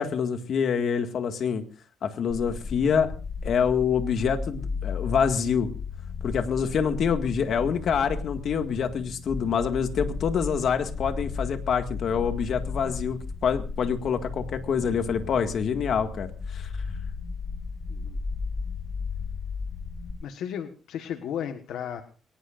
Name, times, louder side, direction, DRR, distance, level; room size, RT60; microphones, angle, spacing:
voice 1, 0.0-1.6 2.0-3.1 3.4-5.7 6.2-16.7, left 7 dB, 55° left, 7 dB, 1.9 m, -26 dB
sound 1, 2.3-20.1, left 4 dB, 30° left, 2.9 m, -35 dB
voice 2, 17.9-18.2 20.2-22.0, left 9 dB, 75° left, 7 dB, 1.4 m, -34 dB
23.0 x 19.0 x 2.5 m, 0.36 s
cardioid pair, 125°, 0 cm